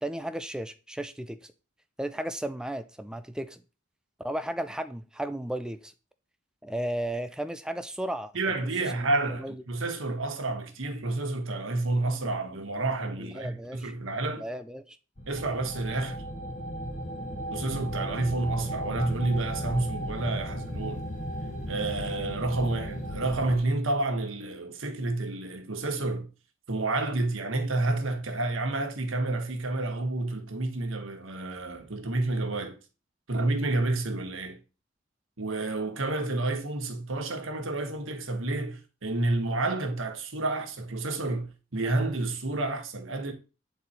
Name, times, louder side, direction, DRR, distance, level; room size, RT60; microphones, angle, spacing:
voice 1, 0.0-1.5 2.0-3.6 4.2-5.9 6.6-8.3 8.8-9.6 13.2-13.9 14.4-15.0, right 1 dB, 5° right, 0.3 m, -34 dB
voice 2, 8.3-14.4 15.3-16.2 17.5-21.1 21.7-26.3 26.7-32.8 33.3-34.6 35.4-43.3, right 2 dB, 80° right, 1.3 m, -30 dB
sound 1, 15.2-23.6, equal, 35° left, 1.0 m, -35 dB
8.5 x 4.0 x 4.2 m
head